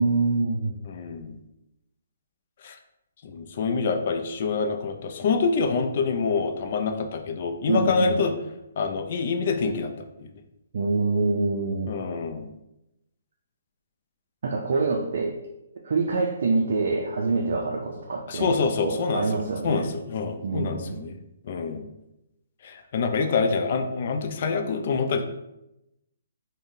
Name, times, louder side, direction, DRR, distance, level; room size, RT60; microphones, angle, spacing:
voice 1, 0.0-0.8 7.7-8.2 10.7-11.9 14.4-15.3 15.8-18.5 18.8-19.9 20.4-21.0, right 3 dB, 65° right, 0 dB, 0.4 m, -25 dB
voice 2, 0.9-1.4 2.6-2.8 3.2-8.3 8.8-10.3 11.9-12.5 18.3-21.2 21.4-21.9 22.6-25.2, left 5 dB, 50° left, 6 dB, 0.4 m, -26 dB
3.5 x 2.1 x 2.7 m, 0.88 s
hypercardioid pair, 145°, 0 cm